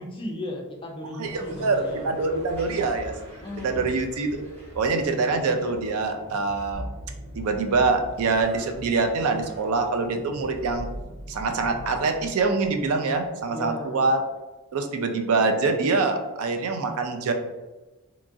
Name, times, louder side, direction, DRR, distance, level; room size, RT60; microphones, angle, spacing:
voice 1, 0.0-2.1 3.4-3.8 13.5-14.0, left 1 dB, 25° left, 1 dB, 0.4 m, -36 dB
sound 1, 1.2-13.7, equal, 30° right, 1.1 m, -42 dB
voice 2, 1.2-3.1 3.6-4.4 4.7-6.8 7.4-10.9 11.3-14.2 14.7-17.3, right 3 dB, 70° right, 5 dB, 0.4 m, -25 dB
2.8 x 2.4 x 2.6 m, 1.1 s
head